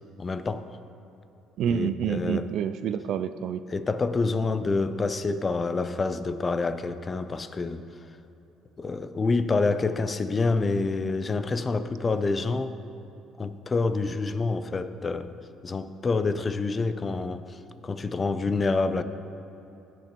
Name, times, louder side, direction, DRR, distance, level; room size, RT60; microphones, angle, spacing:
voice 1, 0.2-0.6 1.7-2.5 3.7-7.8 8.8-12.7 13.4-15.3 15.6-19.0, left 3 dB, 30° left, 0.5 m, -27 dB
voice 2, 1.6-3.6, right 8 dB, 70° right, 0.3 m, -28 dB
16.0 x 6.0 x 3.0 m
supercardioid pair, 80°, 0 cm